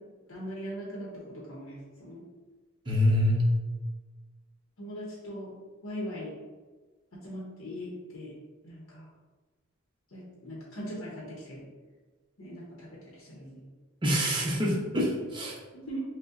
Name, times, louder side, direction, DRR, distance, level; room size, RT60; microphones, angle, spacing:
voice 1, 0.3-2.2 4.8-5.5 5.8-6.3 7.1-8.3 8.6-9.1 10.1-11.7 12.4-13.6 15.7-16.0, equal, 75° left, -4 dB, 0.7 m, -40 dB
voice 2, 2.9-3.5 14.0-15.5, left 1 dB, 25° right, -3 dB, 0.6 m, -25 dB
5.2 x 2.1 x 2.5 m, 1.3 s
head